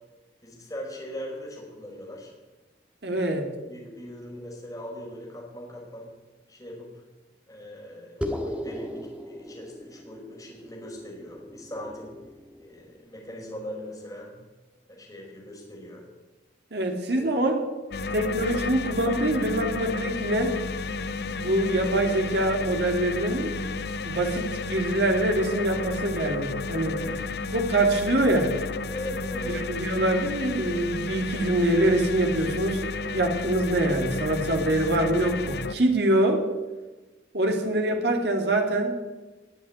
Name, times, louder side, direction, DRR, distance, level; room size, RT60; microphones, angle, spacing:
voice 1, 0.4-2.3 3.1-3.2 3.7-6.1 6.5-6.9 7.5-12.1 12.6-14.3 14.9-16.1 17.1-17.3 26.9-27.2 28.9-29.7, equal, 20° left, -2 dB, 4.8 m, -40 dB
voice 2, 3.0-3.5 16.7-17.6 18.1-20.6 21.4-23.6 24.0-27.0 27.5-28.5 29.5-36.4 37.3-39.0, right 1 dB, 60° right, 3 dB, 2.4 m, -24 dB
sound 1, 8.2-13.0, left 1 dB, 5° right, 1.6 m, -37 dB
sound 2, 17.9-35.7, left 3 dB, 60° left, 0.7 m, -32 dB
19.5 x 7.2 x 9.6 m, 1.2 s
head